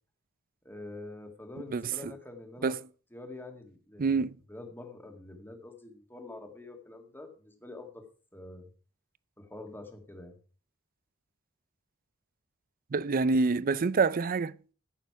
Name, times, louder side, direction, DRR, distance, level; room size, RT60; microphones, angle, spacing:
voice 1, 0.6-2.8 3.1-4.2 4.5-8.0 8.3-8.7 9.4-10.4, left 2 dB, 10° left, 1.9 m, -46 dB
voice 2, 1.7-2.1 2.6-2.8 4.0-4.4 12.9-14.7, right 4 dB, 40° right, 0.5 m, -27 dB
14.5 x 6.7 x 4.7 m
head